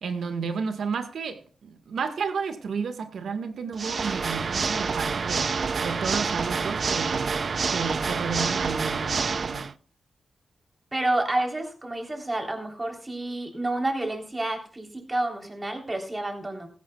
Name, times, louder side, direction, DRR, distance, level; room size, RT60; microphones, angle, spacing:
voice 1, 0.0-5.5 5.8-7.3 7.7-9.7, right 5 dB, 80° right, 1.6 m, -32 dB
Water / Mechanisms, 3.7-9.7, right 5 dB, 55° right, 0.4 m, -27 dB
voice 2, 10.9-16.7, right 2 dB, 25° right, 3.5 m, -29 dB
15.5 x 15.5 x 2.3 m
cardioid pair, 70°, 0 cm